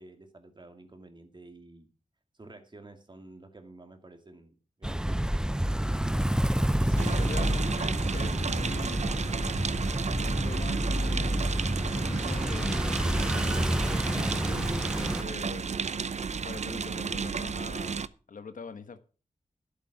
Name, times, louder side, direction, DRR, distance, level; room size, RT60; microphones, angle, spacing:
voice 1, 0.0-1.9 2.3-5.5, right 2 dB, 35° right, 2.4 m, -51 dB
sound 1, 4.8-15.2, right 1 dB, 5° right, 0.6 m, -28 dB
voice 2, 6.8-9.3 10.2-11.4 11.9-15.7 16.4-19.0, left 5 dB, 80° left, 1.3 m, -43 dB
sound 2, 7.0-18.1, right 5 dB, 55° right, 0.6 m, -33 dB
11.5 x 8.4 x 6.0 m
wide cardioid pair, 80°, 14 cm